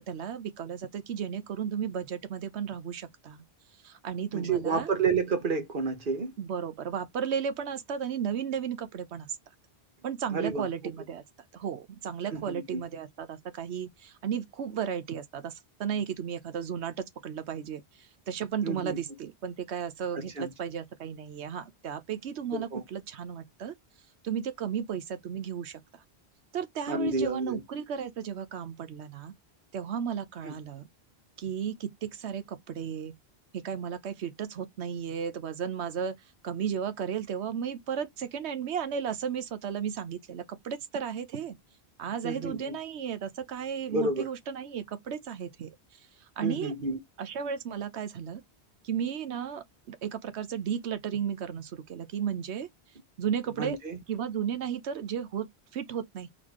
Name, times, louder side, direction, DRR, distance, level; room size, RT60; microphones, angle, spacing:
voice 1, 0.0-3.4 3.8-4.9 6.4-9.4 10.0-11.2 11.5-23.7 24.2-26.0 26.5-29.3 29.7-30.9 31.4-33.1 33.5-36.2 36.4-41.6 42.0-46.1 46.4-46.7 47.2-48.4 48.8-52.7 53.2-53.8 54.1-56.3, right 8 dB, 80° right, 1.1 m, -34 dB
voice 2, 4.3-6.3 10.3-10.7 12.3-12.8 18.6-19.0 20.1-20.5 22.5-22.8 26.9-27.6 30.4-30.5 42.2-42.8 43.9-44.3 46.4-47.0 53.6-54.0, right 4 dB, 55° right, 1.3 m, -30 dB
4.1 x 3.4 x 3.0 m
omnidirectional pair, 1.1 m